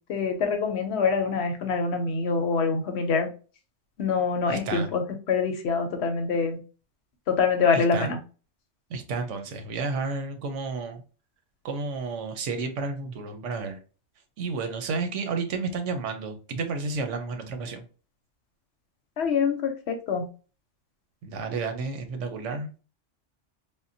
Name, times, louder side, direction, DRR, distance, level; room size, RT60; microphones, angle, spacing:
voice 1, 0.1-3.3 4.0-6.6 7.3-8.2 19.2-20.3, left 5 dB, 70° left, 0.9 m, -25 dB
voice 2, 4.5-4.9 7.7-8.1 8.9-11.0 11.6-13.8 14.4-17.8 21.2-22.8, right 4 dB, 85° right, 1.0 m, -31 dB
3.6 x 2.2 x 2.6 m
omnidirectional pair, 1.2 m